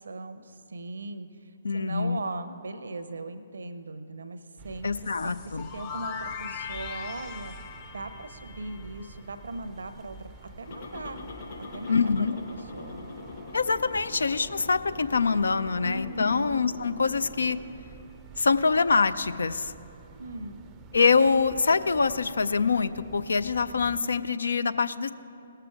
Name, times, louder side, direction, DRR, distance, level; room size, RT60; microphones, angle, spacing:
voice 1, 0.0-4.9 5.2-7.5 7.9-10.2 10.6-11.2 11.6-12.0 12.5-13.1 15.8-16.6 20.2-20.6, right 2 dB, 70° right, 10 dB, 0.7 m, -38 dB
voice 2, 1.6-2.2 4.8-5.7 11.9-12.3 13.5-17.6 18.4-19.7 20.9-25.1, left 5 dB, 70° left, 13 dB, 0.4 m, -25 dB
sound 1, 4.6-24.0, right 5 dB, 20° right, 0.5 m, -49 dB
sound 2, 5.0-9.8, left 6 dB, 35° left, 0.7 m, -40 dB
sound 3, 10.6-17.6, left 3 dB, 50° left, 2.6 m, -43 dB
18.0 x 6.8 x 4.8 m, 2.6 s
figure-of-eight pair, 130°, 0 cm